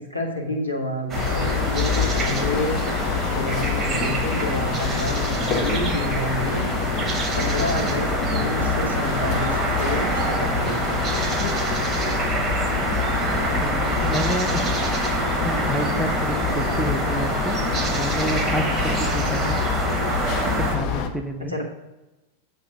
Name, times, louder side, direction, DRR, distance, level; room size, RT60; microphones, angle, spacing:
voice 1, 0.0-2.8 3.3-6.7 7.3-11.0 21.4-21.6, left 1 dB, 85° left, 0 dB, 1.3 m, -29 dB
sound 1, 1.1-21.1, left 6 dB, 40° left, 0.6 m, -26 dB
sound 2, 1.1-20.8, right 3 dB, 20° right, 1.1 m, -27 dB
voice 2, 13.4-14.7 15.4-17.6 17.8-19.6 20.6-21.5, equal, 5° right, 3 dB, 0.7 m, -29 dB
7.9 x 3.3 x 5.8 m, 1.0 s
figure-of-eight pair, 90°, 0 cm